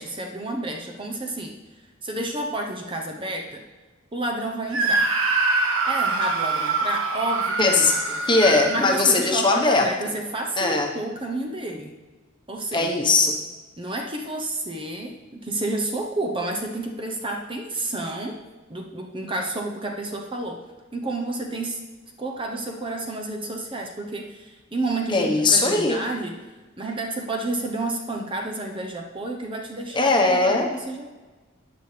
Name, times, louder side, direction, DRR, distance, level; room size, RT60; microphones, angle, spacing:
voice 1, 0.0-1.6 2.0-3.6 4.1-5.1 5.9-8.2 8.7-12.0 12.5-13.0 13.8-18.4 18.7-20.6 20.9-21.8 22.2-26.4 26.8-31.1, right 2 dB, 25° right, 2 dB, 0.8 m, -30 dB
Screaming, 4.7-9.6, right 3 dB, 75° right, 1.6 m, -25 dB
voice 2, 7.6-7.9 8.3-9.8 10.6-10.9 12.7-13.3 25.1-26.0 29.9-30.7, left 3 dB, 20° left, 1 dB, 1.1 m, -19 dB
14.0 x 9.5 x 3.4 m, 1.3 s
head